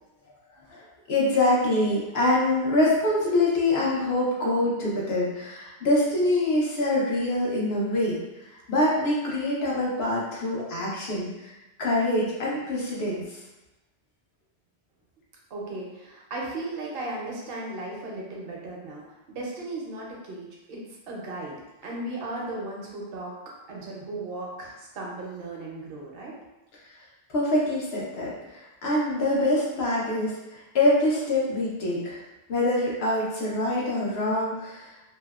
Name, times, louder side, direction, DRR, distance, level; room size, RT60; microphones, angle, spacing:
voice 1, 0.7-13.4 27.3-32.2 32.5-34.9, left 1 dB, 80° left, -5 dB, 1.0 m, -25 dB
voice 2, 15.5-21.5 21.8-23.3 23.7-26.3, right 2 dB, 70° right, -3 dB, 0.8 m, -36 dB
2.7 x 2.0 x 2.3 m, 1.0 s
omnidirectional pair, 1.0 m